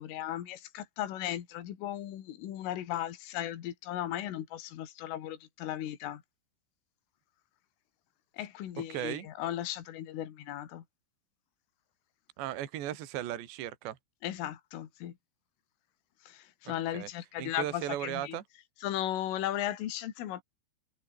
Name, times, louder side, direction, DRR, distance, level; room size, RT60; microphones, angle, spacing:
voice 1, 0.0-6.2 8.3-10.8 14.2-15.1 16.3-18.4 18.8-20.4, left 12 dB, 75° left, 4.9 m, -36 dB
voice 2, 8.9-9.3 12.4-14.0 16.7-17.1 17.4-18.4, right 12 dB, 60° right, 4.1 m, -36 dB
omnidirectional pair, 6.0 m